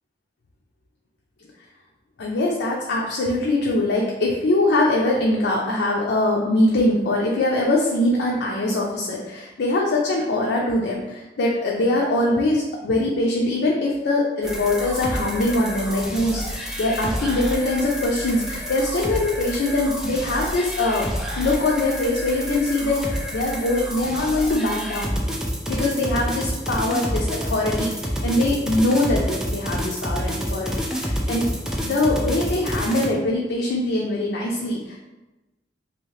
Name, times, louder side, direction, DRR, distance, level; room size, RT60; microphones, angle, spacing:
voice 1, 2.2-21.1 21.3-25.2 25.7-31.5 31.8-35.0, left 2 dB, 75° left, -3 dB, 0.5 m, -22 dB
sound 1, 14.4-33.1, equal, 5° right, 0.4 m, -28 dB
2.8 x 2.7 x 3.1 m, 1.0 s
head